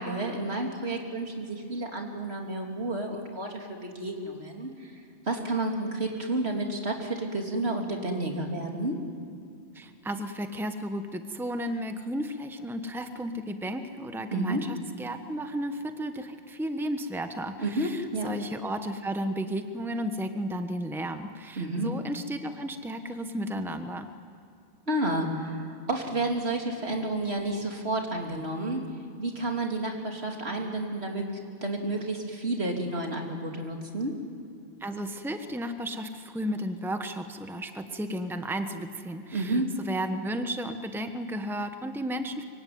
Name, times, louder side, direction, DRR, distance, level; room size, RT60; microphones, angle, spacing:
voice 1, 0.0-4.9 5.3-9.0 14.3-14.6 17.6-18.3 21.6-21.9 24.9-28.8 29.2-34.1 39.3-39.7, right 2 dB, 75° right, 1 dB, 3.4 m, -31 dB
voice 2, 9.7-24.1 34.8-42.4, equal, ahead, 7 dB, 1.1 m, -33 dB
24.0 x 24.0 x 9.5 m, 2.4 s
omnidirectional pair, 1.1 m